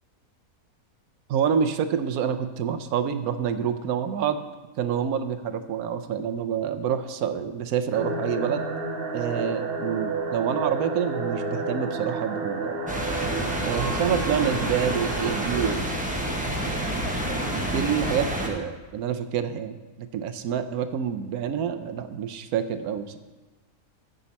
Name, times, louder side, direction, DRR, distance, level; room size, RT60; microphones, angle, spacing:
voice 1, 1.3-4.4 4.8-8.7 9.1-12.8 13.6-15.9 17.3-23.2, right 8 dB, 75° right, 10 dB, 1.1 m, -27 dB
sound 1, 7.9-15.7, right 3 dB, 45° right, 1.0 m, -31 dB
sound 2, 12.9-18.5, right 1 dB, 5° right, 1.0 m, -28 dB
15.5 x 5.4 x 4.1 m, 1.2 s
omnidirectional pair, 1.6 m